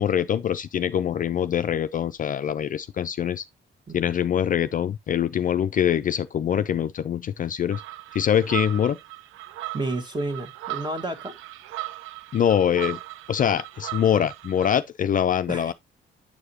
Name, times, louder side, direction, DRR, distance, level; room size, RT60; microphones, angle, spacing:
voice 1, 0.0-3.4 3.9-7.8 8.1-9.0 12.3-13.0 13.3-15.7, left 9 dB, 45° left, 0.4 m, -24 dB
sound 1, 7.7-14.7, right 16 dB, 90° right, 0.4 m, -37 dB
voice 2, 9.7-11.3 15.5-15.7, right 2 dB, 20° right, 1.5 m, -30 dB
8.7 x 4.8 x 2.8 m
cardioid pair, 90°, 20 cm